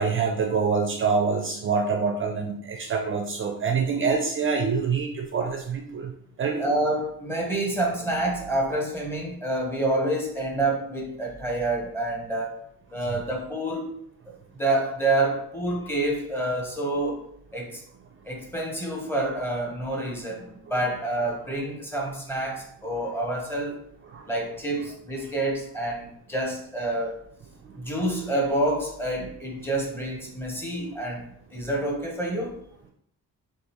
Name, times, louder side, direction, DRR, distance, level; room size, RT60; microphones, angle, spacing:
voice 1, 0.0-6.1 6.4-6.6 24.1-24.3, right 5 dB, 35° right, 2 dB, 0.4 m, -25 dB
voice 2, 6.6-12.5 12.9-13.9 14.5-17.2 17.5-17.8 18.3-23.8 24.3-27.1 27.7-31.2 31.5-32.6, right 1 dB, 5° left, -2 dB, 0.8 m, -28 dB
6.3 x 2.5 x 2.9 m, 0.69 s
wide cardioid pair, 175°, 35 cm